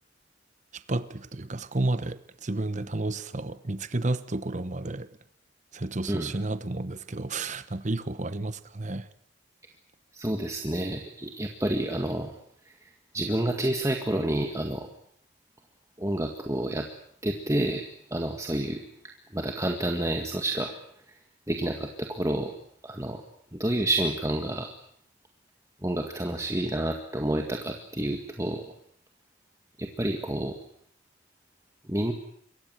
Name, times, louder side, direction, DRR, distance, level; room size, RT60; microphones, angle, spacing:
voice 1, 0.7-5.1 5.7-9.1, right 2 dB, 40° right, 1.0 m, -31 dB
voice 2, 10.1-12.3 12.8-14.9 16.0-16.9 17.2-17.8 18.1-18.8 19.3-20.7 21.1-21.2 21.5-22.5 22.8-23.2 23.5-24.7 25.8-28.7 29.8-30.5 31.9-32.1, right 1 dB, 15° right, 1.9 m, -29 dB
26.5 x 23.0 x 7.7 m
head